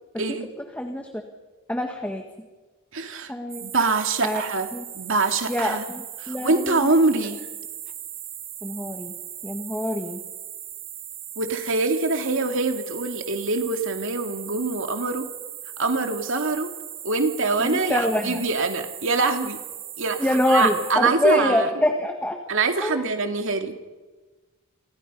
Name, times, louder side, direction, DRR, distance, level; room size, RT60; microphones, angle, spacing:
voice 1, 0.2-0.5 2.9-3.3 3.6-4.7 4.9-5.8 6.2-7.4 11.4-15.3 15.8-16.7 17.0-19.6 20.0-21.7 22.5-23.8, right 3 dB, 65° right, 5 dB, 2.6 m, -24 dB
voice 2, 0.8-1.1 1.7-2.2 3.3-3.6 4.2-4.4 4.7-4.8 5.5-6.9 8.6-9.1 9.4-10.2 17.6-18.4 20.2-22.4 22.8-23.0, left 1 dB, 5° left, 4 dB, 1.9 m, -25 dB
sound 1, 3.5-20.9, right 10 dB, 45° right, 2.7 m, -38 dB
29.5 x 25.0 x 5.6 m, 1.2 s
head